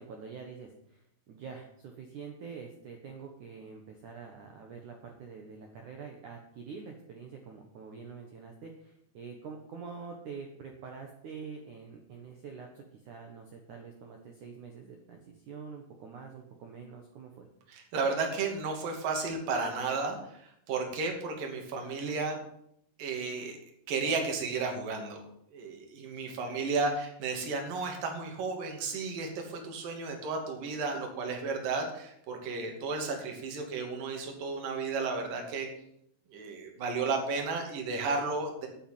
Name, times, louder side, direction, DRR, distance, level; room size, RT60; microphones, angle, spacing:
voice 1, 0.0-17.5 26.4-26.6, right 5 dB, 80° right, 3 dB, 1.7 m, -46 dB
voice 2, 17.7-22.4 23.0-23.6 23.9-25.2 25.5-35.7 36.3-38.7, right 4 dB, 50° right, 2 dB, 3.6 m, -33 dB
9.1 x 8.9 x 9.0 m, 0.73 s
omnidirectional pair, 5.8 m